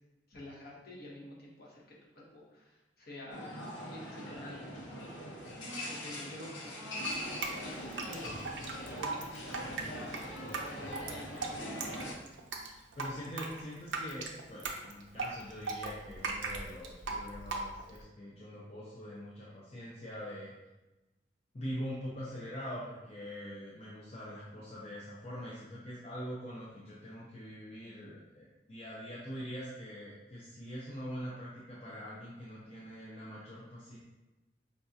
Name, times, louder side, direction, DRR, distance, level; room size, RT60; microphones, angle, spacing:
voice 1, 0.3-3.6 3.9-5.3 5.9-9.2 9.9-10.2 10.6-12.0, left 1 dB, 55° left, -4 dB, 1.0 m, -49 dB
sound 1, 3.3-12.1, equal, 90° left, 0.9 m, -42 dB
Drip, 7.0-18.0, right 3 dB, 80° right, 0.5 m, -39 dB
voice 2, 13.0-20.5 21.5-34.0, equal, 35° left, -7 dB, 0.6 m, -43 dB
5.1 x 2.3 x 2.7 m, 1.0 s
head